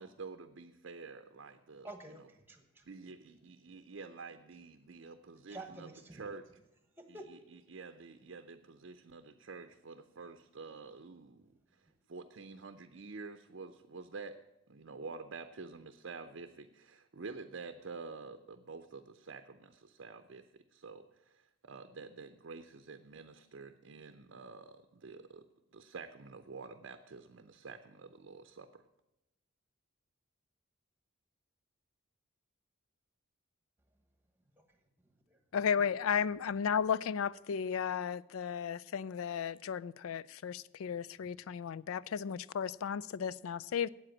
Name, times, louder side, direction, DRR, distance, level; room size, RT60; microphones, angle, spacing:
voice 1, 0.0-1.9 2.9-6.4 7.1-11.5 12.1-14.4 14.7-25.4 25.7-28.8, right 4 dB, 60° right, 0.6 m, -48 dB
voice 2, 1.8-2.9 5.5-6.3 7.0-7.3 11.9-12.0 34.6-34.8 35.0-35.4 35.7-35.9 41.2-41.4, right 2 dB, 10° right, 1.1 m, -50 dB
voice 3, 35.5-43.9, left 7 dB, 80° left, 0.4 m, -34 dB
8.6 x 7.8 x 8.8 m
head